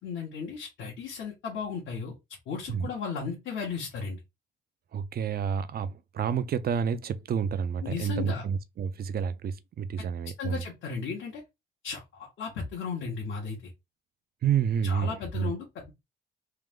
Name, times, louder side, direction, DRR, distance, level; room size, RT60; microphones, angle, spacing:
voice 1, 0.0-2.1 2.5-4.2 7.8-8.4 10.4-11.4 11.8-13.6 14.8-15.9, left 5 dB, 75° left, 1.5 m, -35 dB
voice 2, 4.9-10.6 14.4-15.5, right 7 dB, 50° right, 0.6 m, -29 dB
3.6 x 2.6 x 3.7 m
cardioid pair, 90°, 20 cm